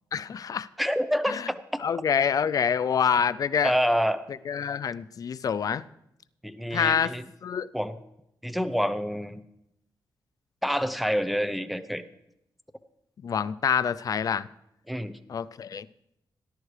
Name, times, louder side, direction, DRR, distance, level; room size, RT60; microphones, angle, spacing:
voice 1, 0.1-0.7 1.3-1.5 1.8-3.7 4.5-5.8 6.7-7.1 7.4-7.7 13.2-14.5 15.3-15.9, left 7 dB, 50° left, 16 dB, 0.4 m, -26 dB
voice 2, 0.8-1.8 3.6-4.2 6.4-7.2 7.7-8.0 8.4-9.4 10.6-12.0 14.9-15.1, equal, ahead, 11 dB, 0.7 m, -27 dB
18.5 x 11.0 x 3.3 m, 0.83 s
cardioid pair, 105°, 8 cm